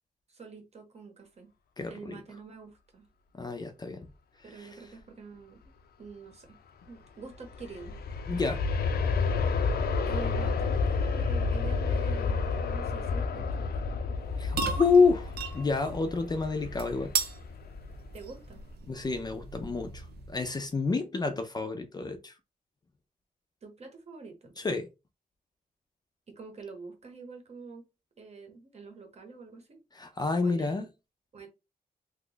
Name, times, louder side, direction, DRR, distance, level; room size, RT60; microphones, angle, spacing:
voice 1, 0.3-1.5 1.9-3.1 4.4-5.6 6.0-6.6 6.9-8.4 10.1-13.9 18.1-18.6 23.6-24.5 26.3-27.9 28.2-29.8 30.4-30.8 31.3-31.5, right 4 dB, 40° right, 0.9 m, -46 dB
voice 2, 1.8-2.2 3.3-4.1 4.6-4.7 8.3-8.6 14.4-17.1 18.9-22.3 24.6-24.9 29.9-30.9, left 4 dB, 25° left, 0.4 m, -28 dB
Aircraft, 7.3-18.2 18.6-18.7, left 4 dB, 80° left, 0.5 m, -30 dB
sound 1, 14.2-20.6, right 4 dB, 85° right, 0.6 m, -37 dB
2.9 x 2.2 x 3.9 m
wide cardioid pair, 160°, 16 cm